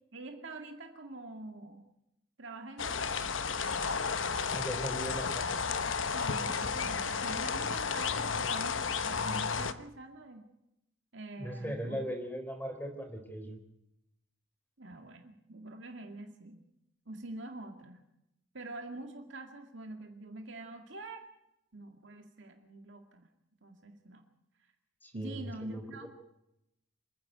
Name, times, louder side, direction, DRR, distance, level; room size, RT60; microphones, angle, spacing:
voice 1, 0.1-1.8 2.4-3.2 6.1-10.5 11.1-12.0 14.8-16.6 17.1-18.0 18.5-21.3 21.7-23.3 23.6-24.2 25.1-26.1, right 2 dB, 65° right, 4 dB, 2.2 m, -45 dB
sound 1, 2.8-9.7, left 5 dB, 70° left, 1.0 m, -32 dB
voice 2, 4.5-5.6 11.4-13.6 25.0-25.8, equal, 10° left, 5 dB, 4.2 m, -39 dB
27.5 x 10.5 x 9.2 m, 0.82 s
head